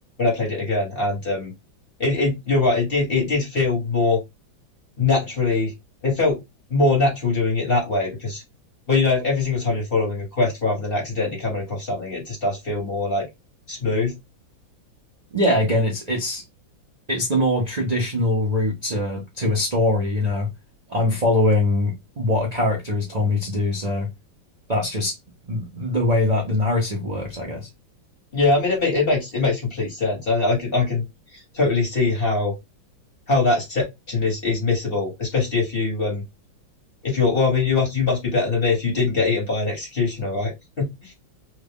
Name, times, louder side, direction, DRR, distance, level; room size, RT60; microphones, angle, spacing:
voice 1, 0.2-1.5 2.0-4.2 5.0-5.7 6.0-6.4 6.7-8.4 8.9-13.3 13.7-14.1 28.3-31.0 31.3-32.5 33.3-36.2 37.0-41.1, left 3 dB, 30° left, 1.4 m, -22 dB
voice 2, 15.3-16.4 17.1-20.5 20.9-24.1 24.7-25.1 25.4-27.7, left 1 dB, 55° right, 0.4 m, -22 dB
3.1 x 2.4 x 3.5 m
omnidirectional pair, 2.1 m